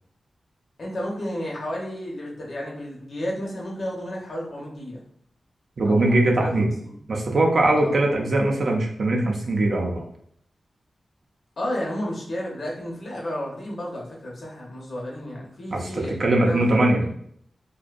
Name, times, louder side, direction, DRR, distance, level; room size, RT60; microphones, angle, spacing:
voice 1, 0.8-5.0 5.8-6.5 6.8-6.9 7.8-8.0 11.6-17.1, equal, 65° left, -3 dB, 0.7 m, -32 dB
voice 2, 5.8-6.7 7.1-10.0 15.7-17.0, right 2 dB, 65° right, 0 dB, 0.4 m, -21 dB
2.5 x 2.1 x 2.4 m, 0.66 s
wide cardioid pair, 85°, 0 cm